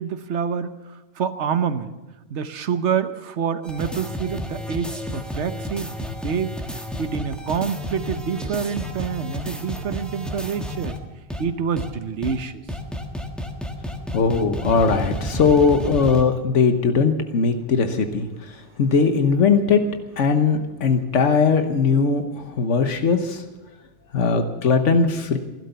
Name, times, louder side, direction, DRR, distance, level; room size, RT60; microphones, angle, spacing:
voice 1, 0.0-2.0 2.3-5.9 6.2-6.6 7.0-11.0 11.4-12.6, right 7 dB, 75° right, 11 dB, 1.2 m, -27 dB
sound 1, 3.6-11.0 11.3-11.4 11.8-11.9 12.2-12.3 12.7-16.2, equal, ahead, 1.3 m, -31 dB
voice 2, 14.1-18.5 18.8-19.8 20.2-23.4 24.1-25.4, left 5 dB, 85° left, 7 dB, 1.4 m, -19 dB
17.0 x 12.0 x 6.9 m, 1.1 s
omnidirectional pair, 1.2 m